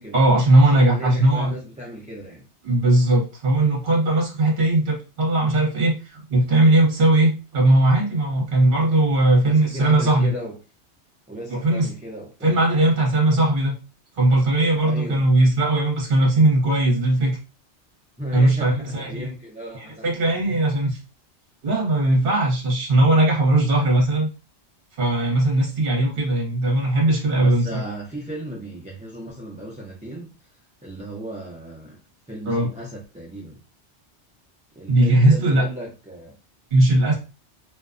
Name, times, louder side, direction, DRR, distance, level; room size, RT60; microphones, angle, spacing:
voice 1, 0.1-1.5 2.6-10.3 11.5-11.9 12.4-13.7 14.2-17.4 18.3-19.3 20.0-21.0 21.6-24.3 25.0-27.8 32.5-32.7 34.9-35.7 36.7-37.1, right 2 dB, 50° right, 1.0 m, -19 dB
voice 2, 0.7-2.5 9.4-10.6 11.3-12.6 14.8-15.2 18.2-20.1 20.4-20.6 27.4-30.3 30.8-32.0 32.3-33.6 34.8-36.3, equal, 10° right, 0.3 m, -36 dB
2.5 x 2.2 x 2.4 m
omnidirectional pair, 1.2 m